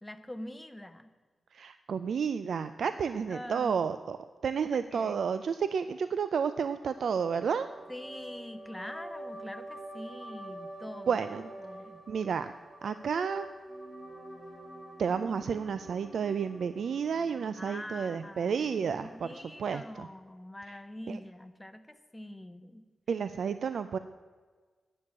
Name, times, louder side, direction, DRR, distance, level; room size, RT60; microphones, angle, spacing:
voice 1, 0.0-1.1 2.9-3.9 4.7-5.2 7.9-11.2 11.6-12.0 17.5-22.8, left 1 dB, 10° left, 9 dB, 0.7 m, -44 dB
voice 2, 1.5-4.2 4.4-7.7 11.1-11.5 12.1-12.5 12.8-13.5 15.0-19.3 19.6-20.1 21.1-21.2 23.1-24.0, right 6 dB, 75° right, 11 dB, 0.4 m, -31 dB
sound 1, 6.9-19.9, right 1 dB, 20° right, 3.4 m, -47 dB
10.0 x 6.4 x 8.4 m, 1.4 s
wide cardioid pair, 130°, 0 cm